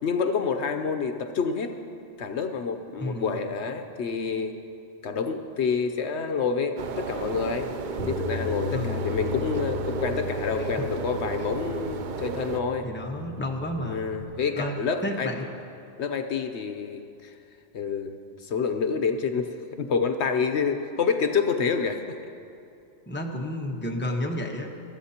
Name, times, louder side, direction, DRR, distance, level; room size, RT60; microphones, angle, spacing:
voice 1, 0.0-1.8 2.2-4.5 5.0-7.7 8.1-12.9 13.8-15.3 16.0-17.4 17.7-22.2, left 5 dB, 70° left, 7 dB, 1.0 m, -28 dB
voice 2, 3.0-3.3 8.7-9.0 10.6-10.9 12.8-14.1 14.6-14.8 15.0-15.5 23.1-24.7, left 1 dB, 10° left, 1 dB, 1.0 m, -31 dB
sound 1, 6.8-12.6, right 6 dB, 55° right, 0.6 m, -33 dB
Bass guitar, 8.0-14.2, left 9 dB, 45° left, 1.5 m, -37 dB
23.0 x 14.0 x 2.9 m, 2.7 s
omnidirectional pair, 1.2 m